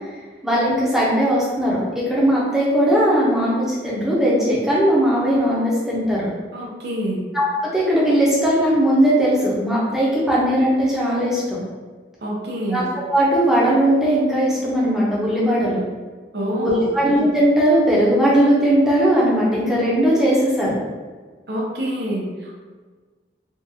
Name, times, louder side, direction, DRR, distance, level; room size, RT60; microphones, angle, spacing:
voice 1, 0.4-6.3 7.3-7.5 7.7-11.6 12.7-12.8 13.1-15.8 16.6-20.8, equal, 5° right, -7 dB, 0.7 m, -18 dB
voice 2, 6.5-7.2 12.2-12.8 16.3-17.0 21.5-22.6, equal, 65° right, -3 dB, 0.7 m, -26 dB
3.6 x 2.4 x 2.7 m, 1.4 s
head